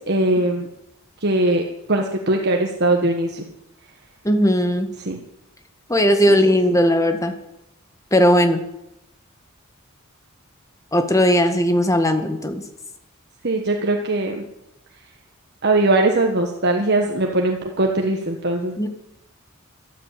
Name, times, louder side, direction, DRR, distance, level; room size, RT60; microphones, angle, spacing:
voice 1, 0.1-0.7 1.2-3.4 5.0-5.2 6.3-6.4 13.4-14.4 15.6-18.7, right 2 dB, 50° right, 2 dB, 1.4 m, -20 dB
voice 2, 4.2-4.9 5.9-7.3 8.1-8.6 10.9-12.6 18.8-18.9, equal, 15° left, 7 dB, 1.7 m, -17 dB
13.0 x 13.0 x 8.4 m, 0.87 s
head